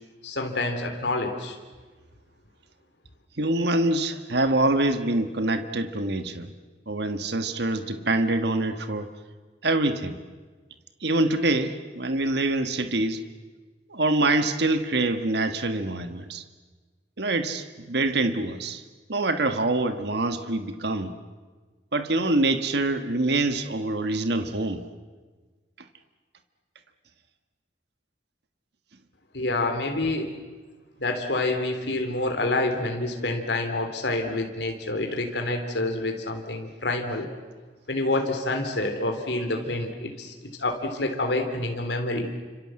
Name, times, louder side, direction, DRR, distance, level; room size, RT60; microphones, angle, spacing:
voice 1, 0.2-1.6 29.3-30.3 31.0-37.3 37.9-42.3, left 2 dB, 70° left, 3 dB, 3.3 m, -27 dB
voice 2, 3.4-6.5 6.9-9.1 9.6-10.2 11.0-13.2 13.9-16.4 17.2-18.8 19.1-21.1 21.9-24.8, right 2 dB, 65° right, 8 dB, 1.5 m, -25 dB
29.5 x 26.5 x 7.7 m, 1.4 s
head